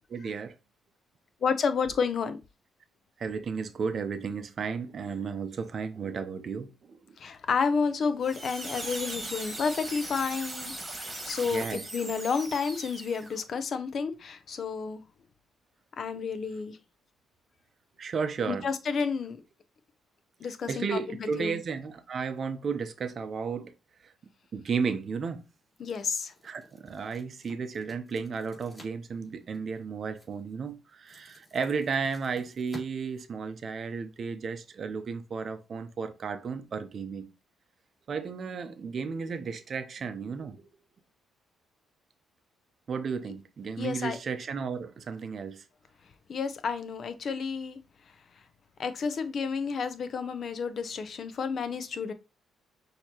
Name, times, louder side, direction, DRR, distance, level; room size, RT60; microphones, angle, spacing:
voice 1, 0.1-0.5 3.2-7.2 11.5-11.8 18.0-18.7 20.7-23.7 24.5-25.4 26.4-37.3 38.1-40.6 42.9-45.6, right 5 dB, 50° right, 0.6 m, -33 dB
voice 2, 1.4-2.4 7.2-15.0 16.0-16.8 18.5-19.4 20.4-21.6 25.8-26.3 43.8-44.2 46.3-47.8 48.8-52.1, left 5 dB, 55° left, 0.6 m, -31 dB
sound 1, 8.2-13.4, right 2 dB, 15° right, 1.5 m, -39 dB
sound 2, 24.9-34.0, left 1 dB, 25° left, 2.7 m, -54 dB
6.3 x 2.9 x 2.9 m
cardioid pair, 90°, 0 cm